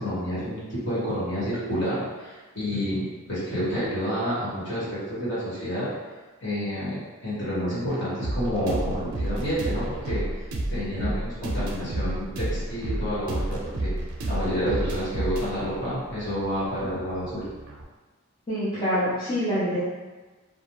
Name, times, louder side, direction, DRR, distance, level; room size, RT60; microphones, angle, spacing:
voice 1, 0.0-5.9 6.4-10.2 10.7-13.9 14.3-17.5, equal, 50° left, -10 dB, 1.3 m, -29 dB
sound 1, 8.2-17.8, right 1 dB, 75° right, 0.5 m, -31 dB
voice 2, 18.5-19.8, equal, 20° left, -12 dB, 0.5 m, -25 dB
2.3 x 2.2 x 2.9 m, 1.3 s
head